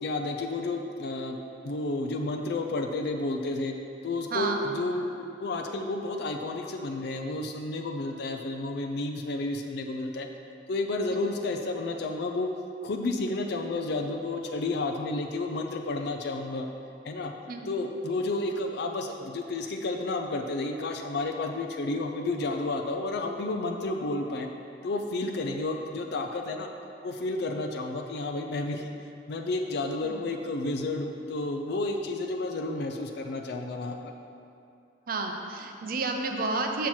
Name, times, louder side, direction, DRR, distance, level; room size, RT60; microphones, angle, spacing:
voice 1, 0.0-1.4 1.6-3.7 4.0-10.3 10.7-12.5 12.8-16.7 17.0-17.3 17.7-24.5 24.8-26.7 27.0-28.9 29.3-34.1, left 2 dB, 65° left, 3 dB, 0.5 m, -31 dB
voice 2, 35.1-36.9, right 3 dB, 55° right, 3 dB, 0.6 m, -31 dB
7.2 x 6.0 x 4.4 m, 2.6 s
head